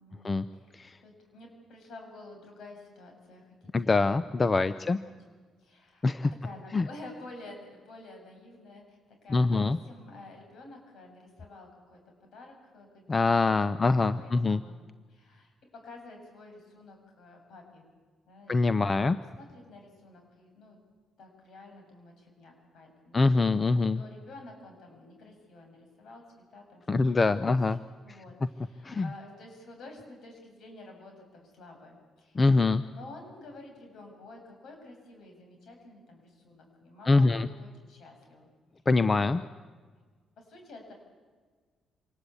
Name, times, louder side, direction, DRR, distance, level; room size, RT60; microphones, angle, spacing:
voice 1, 0.0-4.0 4.7-5.2 5.6-6.1 6.4-14.8 15.1-17.9 18.3-20.8 21.2-26.2 26.5-26.9 27.2-27.7 28.0-38.5 39.0-39.3 40.4-40.9, left 2 dB, 70° left, 3 dB, 7.9 m, -50 dB
voice 2, 3.7-5.0 6.0-6.3 6.7-6.9 9.3-9.8 13.1-14.6 18.5-19.2 23.1-24.0 26.9-27.8 28.8-29.1 32.4-32.8 37.1-37.5 38.9-39.4, left 3 dB, 30° left, 13 dB, 0.7 m, -24 dB
25.5 x 19.5 x 8.5 m, 1.5 s
cardioid pair, 90°, 0 cm